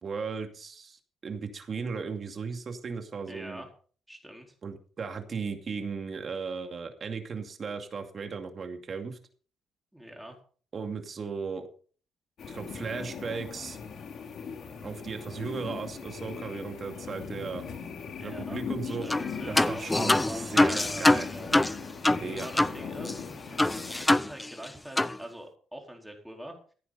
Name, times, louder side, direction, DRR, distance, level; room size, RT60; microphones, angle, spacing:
voice 1, 0.0-3.6 4.6-9.2 10.7-11.7 12.5-13.8 14.8-17.6 18.2-19.1 19.4-21.3 22.2-22.5, right 5 dB, 45° right, 5 dB, 2.4 m, -36 dB
voice 2, 3.3-3.7 4.1-4.5 9.9-10.4 18.2-18.6 18.9-21.6 22.4-23.3 24.0-26.6, right 1 dB, 5° right, 1 dB, 4.3 m, -44 dB
sound 1, 12.4-24.1, left 6 dB, 65° left, 2.5 m, -40 dB
sound 2, 19.1-19.3 19.6-22.8 23.0-23.1 23.6-24.7 25.0-25.2, left 2 dB, 15° left, 0.5 m, -24 dB
15.5 x 9.5 x 4.1 m, 0.42 s
cardioid pair, 90°, 0 cm